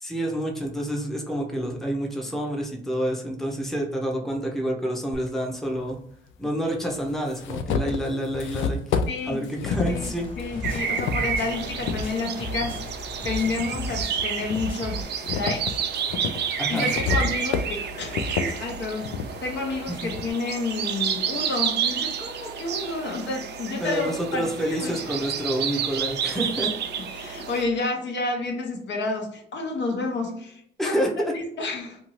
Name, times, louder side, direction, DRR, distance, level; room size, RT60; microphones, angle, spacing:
voice 1, 0.0-6.0 6.4-8.8 9.3-10.3 16.6-16.9 20.0-20.1 23.8-26.7 30.8-31.3, equal, ahead, -1 dB, 0.7 m, -28 dB
sound 1, 5.1-5.2 6.3-6.4 6.9-12.0 12.5-13.7 14.2-20.3, left 5 dB, 80° left, 0.4 m, -30 dB
voice 2, 9.1-12.8 13.2-15.8 16.7-25.2 27.1-31.1 31.3-32.0, left 3 dB, 65° left, 1 dB, 0.9 m, -30 dB
sound 2, 9.7-15.0, left 1 dB, 25° left, 1.0 m, -36 dB
sound 3, 10.6-27.6, right 7 dB, 60° right, 0.4 m, -30 dB
2.7 x 2.4 x 3.1 m, 0.68 s
cardioid pair, 90°, 20 cm